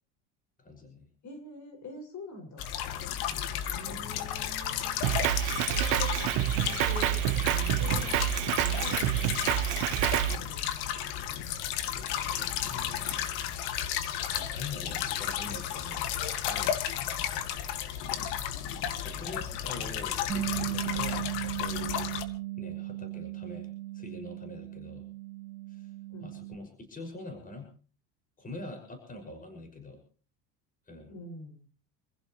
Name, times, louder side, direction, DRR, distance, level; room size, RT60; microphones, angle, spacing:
voice 1, 0.6-1.1 3.3-3.5 11.9-13.6 14.4-16.1 16.4-17.5 19.0-22.1 22.6-23.7 23.9-25.1 25.7-25.9 26.2-27.7 28.4-30.0 30.9-31.1, left 2 dB, 20° left, 4 dB, 6.0 m, -44 dB
voice 2, 1.2-2.6 3.7-5.0 5.7-9.1 10.3-10.7 19.1-19.4 19.7-20.0 26.1-26.4 31.1-31.7, left 2 dB, 45° left, 4 dB, 6.3 m, -45 dB
sound 1, 2.6-22.2, left 10 dB, 75° left, 2.0 m, -33 dB
Drum kit, 5.0-10.4, right 16 dB, 80° right, 1.1 m, -28 dB
Bass guitar, 20.3-26.5, right 16 dB, ahead, 5.7 m, -36 dB
27.0 x 15.5 x 3.1 m, 0.39 s
cardioid pair, 125°, 39 cm